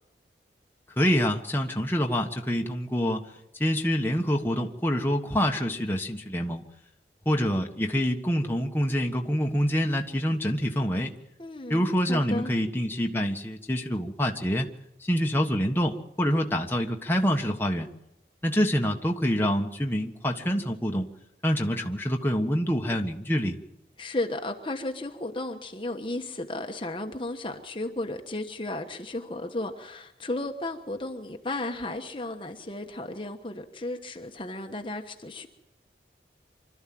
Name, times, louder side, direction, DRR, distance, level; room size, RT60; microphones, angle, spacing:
voice 1, 1.0-3.2 3.5-6.6 7.2-11.1 11.7-14.7 15.0-17.9 18.4-21.1 21.4-23.6, equal, 10° left, 1.4 m, -26 dB
voice 2, 11.4-11.8 12.1-12.5 24.0-35.5, left 2 dB, 30° left, 1.2 m, -34 dB
25.5 x 13.0 x 7.7 m
head